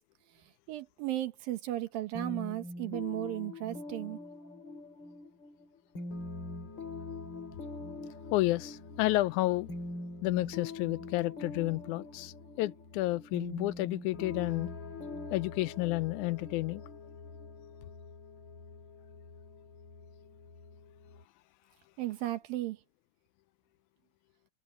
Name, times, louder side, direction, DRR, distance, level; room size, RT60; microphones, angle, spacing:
voice 1, 0.7-4.2 22.0-22.8, right 15 dB, 85° right, 3.1 m, -35 dB
sound 1, 2.2-17.7, left 2 dB, 35° left, 3.7 m, -44 dB
sound 2, 6.1-21.3, left 3 dB, 50° left, 5.9 m, -49 dB
voice 2, 8.3-9.7 10.2-14.7 15.3-16.8, left 18 dB, 85° left, 1.7 m, -31 dB
omnidirectional pair, 4.0 m